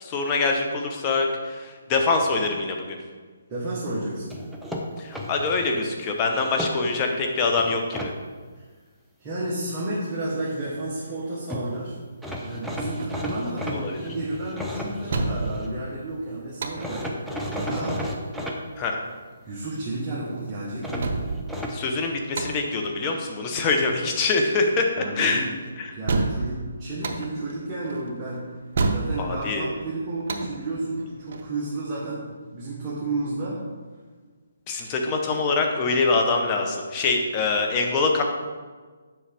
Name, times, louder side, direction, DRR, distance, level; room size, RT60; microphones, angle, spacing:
voice 1, 0.0-3.0 5.0-8.1 13.7-14.0 18.8-18.9 21.7-25.5 25.8-26.0 29.2-29.7 34.7-38.2, left 3 dB, 25° left, 2 dB, 0.9 m, -24 dB
voice 2, 3.5-4.4 8.6-8.7 9.2-12.0 12.4-18.0 19.4-21.2 25.0-25.5 25.9-28.4 28.9-33.6, right 2 dB, 20° right, -8 dB, 1.3 m, -31 dB
sound 1, 4.3-5.7 6.3-7.1 7.6-8.1 11.2-11.3 11.5-11.7 12.2-15.7 16.8-18.6 20.8-21.8, equal, ahead, 0.6 m, -33 dB
sound 2, 12.3-31.5, right 3 dB, 55° right, 0.7 m, -32 dB
7.5 x 5.4 x 3.5 m, 1.4 s
hypercardioid pair, 155°, 0 cm